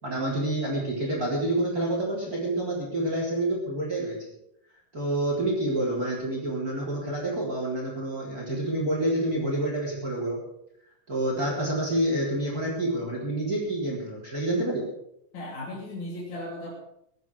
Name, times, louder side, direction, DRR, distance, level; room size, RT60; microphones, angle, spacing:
voice 1, 0.0-4.2 4.9-10.4 11.1-14.9, right 1 dB, 25° right, -2 dB, 4.1 m, -28 dB
voice 2, 15.3-16.7, left 1 dB, 60° left, -5 dB, 4.4 m, -36 dB
18.5 x 12.5 x 4.8 m, 0.76 s
omnidirectional pair, 3.8 m